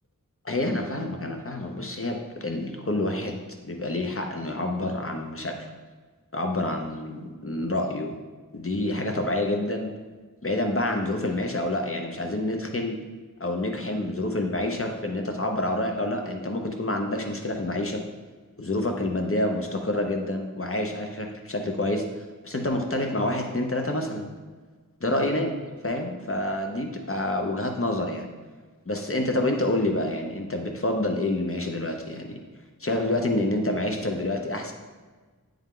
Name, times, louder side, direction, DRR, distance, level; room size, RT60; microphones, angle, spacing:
voice 1, 0.4-5.7 6.3-8.1 8.5-9.9 10.4-13.0 13.4-18.0 18.6-24.3 25.0-25.6 25.8-28.3 28.9-32.3 32.8-34.7, left 1 dB, 40° left, 3 dB, 0.8 m, -28 dB
10.0 x 3.5 x 3.7 m, 1.4 s
wide cardioid pair, 40°, 33 cm